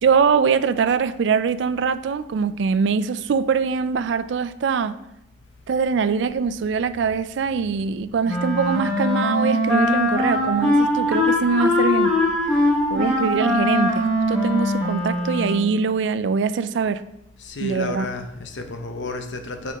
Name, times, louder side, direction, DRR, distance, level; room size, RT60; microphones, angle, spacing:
voice 1, 0.0-5.0 5.7-12.1 12.9-17.0 17.6-18.1, right 5 dB, 75° right, 14 dB, 0.3 m, -22 dB
Wind instrument woodwind instrument, 8.3-15.8, left 1 dB, 5° left, 1.2 m, -21 dB
voice 2, 17.4-19.7, left 2 dB, 85° left, 5 dB, 0.8 m, -31 dB
8.2 x 4.3 x 3.5 m, 0.82 s
head